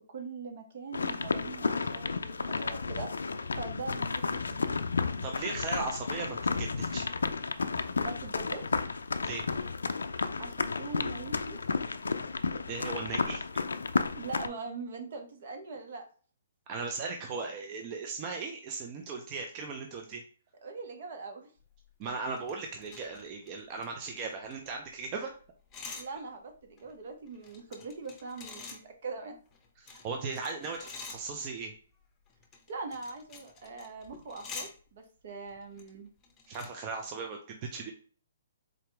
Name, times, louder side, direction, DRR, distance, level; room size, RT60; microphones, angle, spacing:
voice 1, 0.1-3.1 3.6-4.7 8.0-8.6 10.4-11.6 14.1-16.0 20.6-21.5 26.0-29.4 32.7-36.1, right 4 dB, 55° right, 5 dB, 0.9 m, -42 dB
sound 1, 0.9-14.5, left 4 dB, 85° left, 0.3 m, -32 dB
voice 2, 5.2-7.1 9.2-9.4 12.7-13.4 16.7-20.2 22.0-25.3 29.8-31.7 36.5-37.9, right 4 dB, 30° right, 3 dB, 0.6 m, -37 dB
sound 2, 21.7-24.9 25.2-25.3 25.4-26.1 26.5-28.8 29.5-31.6 32.3-34.7 35.5-35.9 36.2-36.7, left 4 dB, 20° left, 0.8 m, -47 dB
3.8 x 2.9 x 3.3 m, 0.41 s
hypercardioid pair, 140°, 0 cm